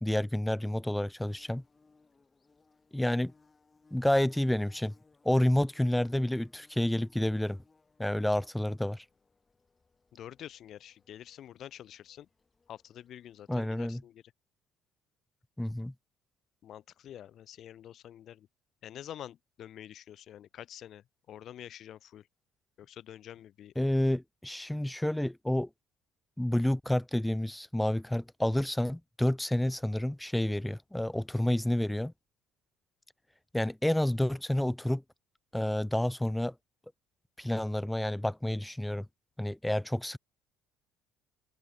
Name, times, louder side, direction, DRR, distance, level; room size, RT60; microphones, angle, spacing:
voice 1, 0.0-1.6 2.9-3.3 3.9-4.9 5.2-7.6 8.0-9.0 13.5-14.0 15.6-15.9 23.8-25.7 26.4-32.1 33.5-35.0 35.5-36.5 37.4-39.1 39.4-40.2, left 1 dB, 5° left, 0.3 m, -29 dB
Bird / Buzz, 1.2-13.8, left 4 dB, 25° left, 3.6 m, -67 dB
voice 2, 10.1-12.3 12.7-14.2 16.6-18.5 18.8-22.3 22.8-23.7, left 11 dB, 60° left, 1.5 m, -47 dB
supercardioid pair, 80°, 0 cm